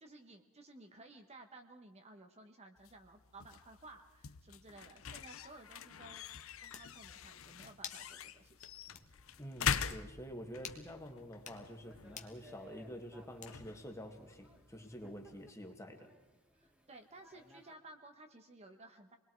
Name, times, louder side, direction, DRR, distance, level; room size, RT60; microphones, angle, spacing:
voice 1, 0.0-6.3 6.6-8.7 16.5-19.2, right 2 dB, 30° right, 4 dB, 1.2 m, -56 dB
sound 1, 2.8-15.5, left 7 dB, 65° left, 0.7 m, -44 dB
sound 2, 6.7-6.9 7.8-8.1 8.5-8.6 8.9-9.1 9.6-9.9 10.6-10.8 11.3-11.6 12.2-12.4 13.4-13.8, left 7 dB, 35° left, 1.5 m, -47 dB
Thunder / Rain, 8.8-17.8, right 1 dB, 5° right, 2.1 m, -63 dB
voice 2, 9.4-16.1, equal, 15° left, 3 dB, 1.9 m, -48 dB
28.0 x 21.0 x 4.7 m, 1.1 s
head